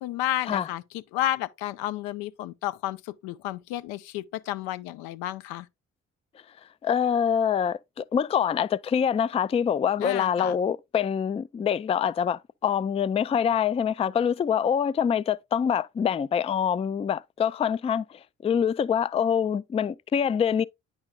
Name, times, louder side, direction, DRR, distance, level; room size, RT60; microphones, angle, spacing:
voice 1, 0.0-5.7 10.0-10.6, left 14 dB, 75° left, 0.6 m, -32 dB
voice 2, 6.8-20.6, left 8 dB, 15° left, 0.3 m, -25 dB
9.5 x 6.2 x 2.3 m
hypercardioid pair, 40°, 38 cm